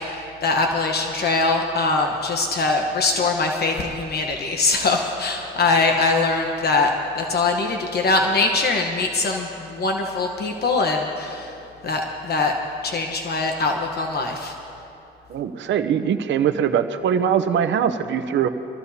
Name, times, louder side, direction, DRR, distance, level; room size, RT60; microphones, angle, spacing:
voice 1, 0.0-11.5 11.8-12.5 12.8-14.5, left 3 dB, 55° left, 3 dB, 1.1 m, -22 dB
voice 2, 15.3-18.5, right 8 dB, 65° right, 9 dB, 0.8 m, -22 dB
23.0 x 14.5 x 2.8 m, 2.8 s
cardioid pair, 90°, 20 cm